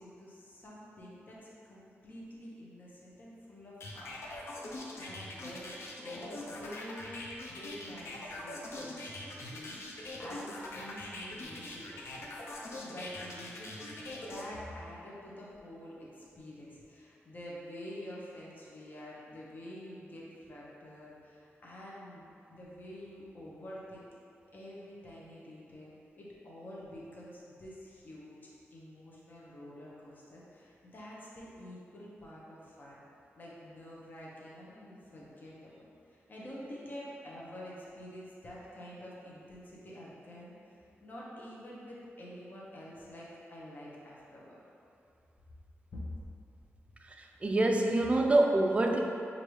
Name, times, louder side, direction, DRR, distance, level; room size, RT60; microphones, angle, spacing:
voice 1, 0.0-1.4 1.6-4.1 4.6-4.7 4.9-12.3 12.8-24.1 24.5-28.4 28.7-33.0 33.4-44.6 45.9-46.1, left 1 dB, 40° left, -6 dB, 0.8 m, -48 dB
sound 1, 3.8-14.4, left 2 dB, 70° left, 0.5 m, -43 dB
voice 2, 47.0-49.0, right 2 dB, 25° right, 2 dB, 0.3 m, -26 dB
4.7 x 2.6 x 3.1 m, 2.6 s
wide cardioid pair, 120°, 5 cm